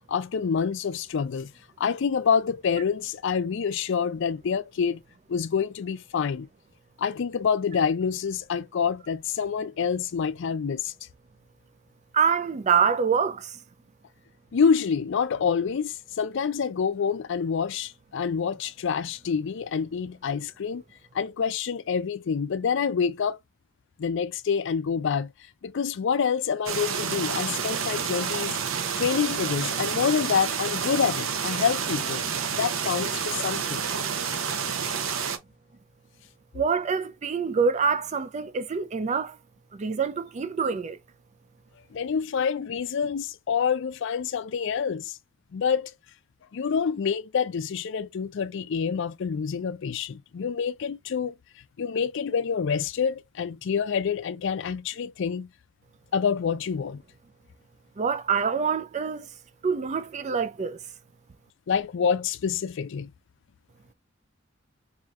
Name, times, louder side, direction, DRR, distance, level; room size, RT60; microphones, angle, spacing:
voice 1, 0.1-1.5 1.8-5.0 5.3-6.5 7.0-10.9 14.5-20.8 21.1-23.4 24.0-25.3 25.6-28.6 29.0-32.2 32.5-33.8 35.0-35.1 41.9-45.2 45.5-45.9 46.5-51.3 51.8-55.5 56.1-57.0 61.7-63.1, left 6 dB, 65° left, 0.4 m, -27 dB
voice 2, 12.1-13.6 36.5-39.4 39.7-41.0 58.0-59.3 59.6-60.8, right 6 dB, 35° right, 0.4 m, -25 dB
sound 1, 26.7-35.4, right 7 dB, 80° right, 0.7 m, -29 dB
4.9 x 2.7 x 2.4 m
head